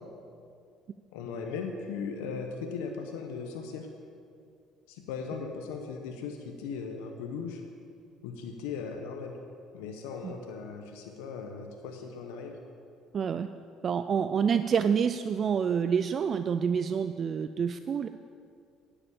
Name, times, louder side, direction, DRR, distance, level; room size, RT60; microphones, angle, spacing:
voice 1, 1.1-3.9 4.9-7.6 8.2-9.4 9.7-12.6, left 5 dB, 90° left, 3 dB, 0.9 m, -38 dB
voice 2, 13.1-13.5 13.8-18.1, right 7 dB, 45° right, 10 dB, 0.3 m, -27 dB
10.0 x 7.0 x 7.0 m, 2.4 s
supercardioid pair, 85°, 0 cm